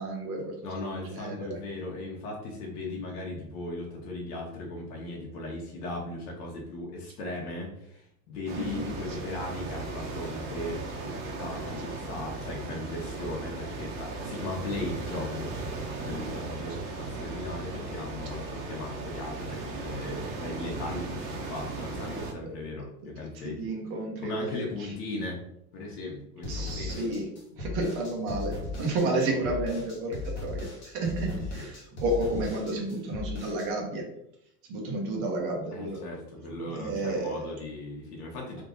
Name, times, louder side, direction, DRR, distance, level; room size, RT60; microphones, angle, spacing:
voice 1, 0.0-1.6 8.5-8.8 9.1-9.2 21.9-22.1 22.4-22.5 23.4-24.9 26.5-27.3 27.6-34.0 34.7-36.0 36.6-37.5, right 2 dB, 30° right, 0 dB, 0.7 m, -32 dB
voice 2, 0.6-15.5 16.0-23.7 24.2-25.4 25.7-27.0 31.6-31.7 35.7-38.6, left 2 dB, 65° left, -2 dB, 1.2 m, -37 dB
sound 1, 8.5-22.3, right 3 dB, 50° right, 1.0 m, -37 dB
sound 2, 26.4-33.7, left 3 dB, 25° left, 0.9 m, -37 dB
3.7 x 2.6 x 3.7 m, 0.75 s
supercardioid pair, 165°, 49 cm